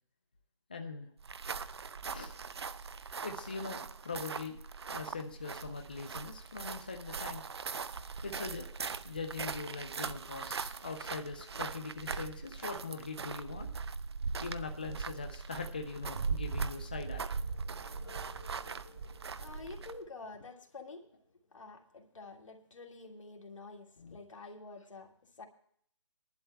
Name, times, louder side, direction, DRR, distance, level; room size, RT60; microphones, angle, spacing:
voice 1, 0.7-1.1 2.1-2.3 3.2-4.6 4.9-7.4 8.2-8.7 9.0-13.7 14.4-17.2, left 4 dB, 20° left, 4 dB, 0.4 m, -41 dB
sound 1, 1.2-20.1, right 5 dB, 55° right, 0.5 m, -40 dB
sound 2, 11.5-15.0 17.0-21.6 24.0-24.2, left 3 dB, 40° left, 1.0 m, -58 dB
voice 2, 19.4-21.0 21.5-25.1 25.4-25.5, left 3 dB, 85° left, 2 dB, 1.8 m, -48 dB
22.5 x 11.0 x 2.2 m, 0.64 s
hypercardioid pair, 175°, 16 cm